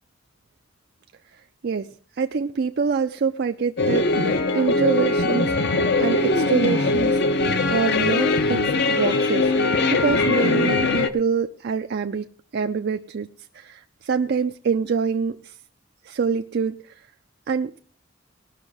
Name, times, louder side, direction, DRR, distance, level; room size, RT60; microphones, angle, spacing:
voice 1, 1.3-7.4 7.7-9.5 9.9-13.3 13.5-15.5 16.0-17.1 17.5-17.8, right 5 dB, 55° right, 7 dB, 0.4 m, -26 dB
sound 1, 3.8-11.1, left 3 dB, 60° left, 0.8 m, -21 dB
18.5 x 6.2 x 4.8 m, 0.43 s
head